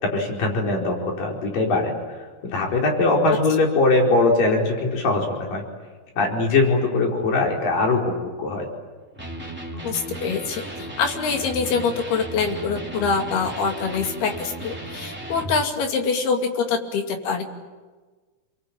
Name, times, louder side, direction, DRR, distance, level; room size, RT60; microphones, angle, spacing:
voice 1, 0.0-1.9 2.5-5.6 6.2-8.7, left 3 dB, 60° left, 1 dB, 6.1 m, -21 dB
Electric guitar, 9.2-15.6, right 1 dB, 5° right, 2.7 m, -35 dB
voice 2, 9.8-17.4, left 5 dB, 90° left, 4 dB, 4.5 m, -25 dB
28.5 x 23.0 x 8.8 m, 1.3 s
omnidirectional pair, 4.4 m